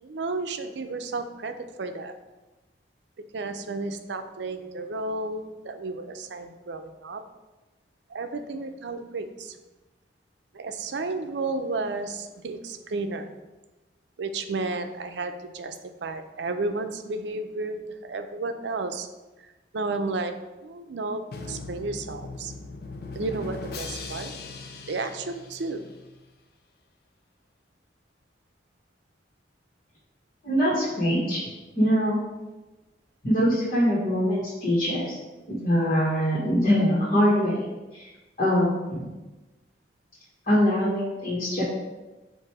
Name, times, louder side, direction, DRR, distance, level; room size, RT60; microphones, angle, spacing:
voice 1, 0.0-2.1 3.3-7.2 8.1-9.6 10.5-13.4 14.2-19.1 19.7-20.3 20.6-22.5 23.1-24.3 24.9-25.9, right 3 dB, 80° right, 8 dB, 0.5 m, -32 dB
Drum, 21.3-26.2, left 3 dB, 60° left, 0.6 m, -39 dB
voice 2, 30.4-31.4 31.7-32.2 33.2-35.1 35.5-37.6 37.9-38.1 38.4-39.1 40.5-41.6, equal, 40° left, -6 dB, 1.5 m, -23 dB
7.5 x 2.7 x 4.7 m, 1.1 s
head